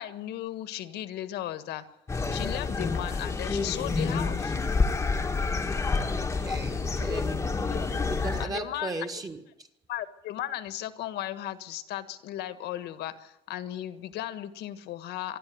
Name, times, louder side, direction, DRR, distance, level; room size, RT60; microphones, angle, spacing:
voice 1, 0.0-1.8 2.3-4.5 7.7-7.8 8.4-8.9 9.9-15.4, left 13 dB, 65° left, 1.6 m, -36 dB
sound 1, 2.1-8.5, left 4 dB, 15° left, 1.2 m, -28 dB
voice 2, 5.9-9.4, right 2 dB, 20° right, 1.6 m, -38 dB
24.5 x 12.5 x 9.5 m
cardioid pair, 165°, 18 cm